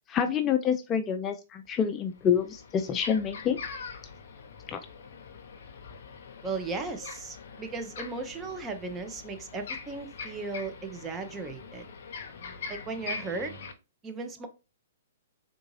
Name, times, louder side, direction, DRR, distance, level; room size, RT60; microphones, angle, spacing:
voice 1, 0.1-3.6 4.7-4.8, left 8 dB, 25° left, 0.3 m, -27 dB
sound 1, 1.6-1.7 2.1-13.7, left 5 dB, 65° left, 0.7 m, -43 dB
voice 2, 6.4-11.8 12.7-13.5 14.0-14.5, right 3 dB, 15° right, 0.6 m, -36 dB
3.7 x 2.5 x 3.0 m
hypercardioid pair, 135°, 0 cm